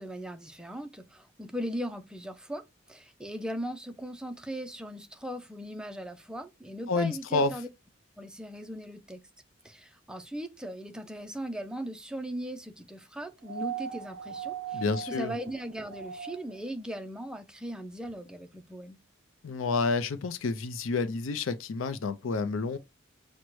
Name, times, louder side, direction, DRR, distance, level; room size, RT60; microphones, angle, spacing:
voice 1, 0.0-2.6 2.9-7.7 8.2-9.2 9.6-19.0, right 1 dB, 5° right, 0.4 m, -38 dB
voice 2, 6.9-7.5 14.7-15.3 19.4-22.8, left 4 dB, 90° left, 0.5 m, -29 dB
sound 1, 13.4-16.7 18.1-18.2, right 7 dB, 70° right, 0.4 m, -39 dB
6.2 x 2.1 x 3.0 m
head